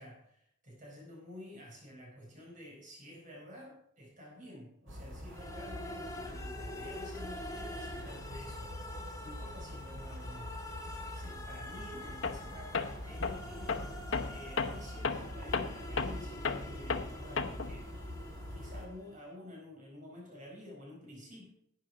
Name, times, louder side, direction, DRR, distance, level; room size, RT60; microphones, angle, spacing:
voice 1, 0.0-10.6 11.1-13.8 14.2-17.9 18.4-21.5, left 1 dB, 45° right, -1 dB, 4.9 m, -50 dB
sound 1, 4.9-18.9, equal, 85° right, 2.6 m, -45 dB
sound 2, 5.3-19.2, left 1 dB, 20° left, 1.6 m, -47 dB
Tools, 12.2-12.5 12.7-17.8, left 4 dB, 90° left, 0.9 m, -35 dB
11.5 x 8.9 x 5.0 m, 0.70 s
head